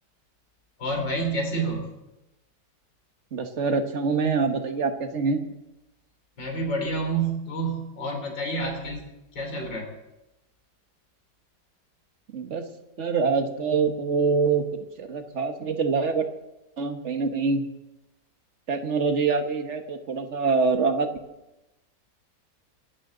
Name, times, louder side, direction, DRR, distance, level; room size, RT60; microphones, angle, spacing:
voice 1, 0.8-1.8 6.4-9.1 9.3-9.9, right 2 dB, 90° left, 2 dB, 4.2 m, -28 dB
voice 2, 3.3-5.5 12.3-12.7 13.0-14.6 15.0-16.3 16.8-17.6 18.7-21.1, right 4 dB, 45° right, 6 dB, 1.5 m, -25 dB
25.0 x 12.5 x 3.9 m, 0.95 s
omnidirectional pair, 1.9 m